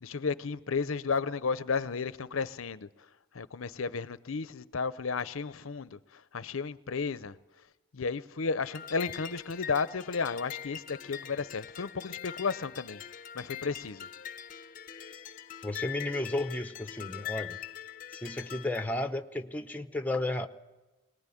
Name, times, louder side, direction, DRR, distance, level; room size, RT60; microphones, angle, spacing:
voice 1, 0.0-2.9 3.3-7.4 7.9-13.0 13.3-14.1, left 5 dB, 85° left, 0.7 m, -33 dB
sound 1, 8.6-18.8, left 9 dB, 40° left, 0.7 m, -43 dB
voice 2, 15.6-17.6 18.1-20.5, left 1 dB, 10° left, 0.8 m, -33 dB
22.5 x 19.0 x 10.0 m
head